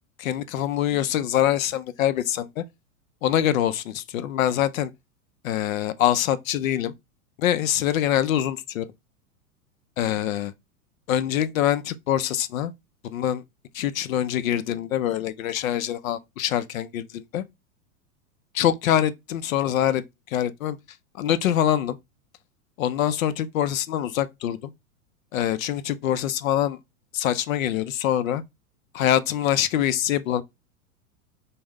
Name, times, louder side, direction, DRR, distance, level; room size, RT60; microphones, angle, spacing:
voice 1, 0.2-2.6 3.2-4.9 5.4-6.9 7.4-8.9 10.0-10.5 11.1-12.7 13.0-13.4 13.7-17.4 18.5-20.8 21.2-22.0 22.8-24.7 25.3-26.8 27.1-28.4 28.9-30.4, left 11 dB, 70° left, 0.6 m, -24 dB
3.4 x 2.2 x 3.5 m
hypercardioid pair, 95°, 43 cm